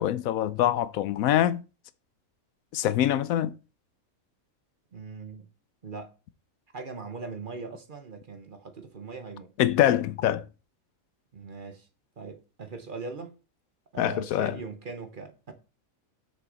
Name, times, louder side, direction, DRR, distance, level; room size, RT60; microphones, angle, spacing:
voice 1, 0.0-1.6 2.7-3.5 9.6-10.4 14.0-14.6, left 12 dB, 80° left, 1.0 m, -24 dB
voice 2, 4.9-5.5 5.8-6.1 6.7-9.5 11.3-11.9 12.2-13.3 13.9-15.5, right 4 dB, 40° right, 1.0 m, -40 dB
6.4 x 6.4 x 3.9 m
omnidirectional pair, 1.5 m